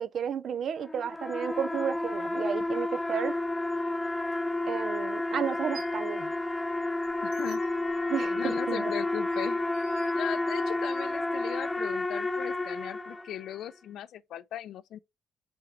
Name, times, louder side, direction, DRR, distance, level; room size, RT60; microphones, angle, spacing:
voice 1, 0.0-3.3 4.7-6.3 8.1-8.9, right 8 dB, 60° right, 0.5 m, -32 dB
sound 1, 0.8-13.6, left 2 dB, 20° left, 0.8 m, -31 dB
sound 2, 4.3-4.4 5.4-6.1 6.5-10.8, right 7 dB, 90° right, 1.6 m, -53 dB
voice 2, 7.2-7.9 8.4-9.6 10.1-15.0, left 11 dB, 75° left, 0.6 m, -38 dB
6.2 x 3.8 x 4.5 m
cardioid pair, 90°, 0 cm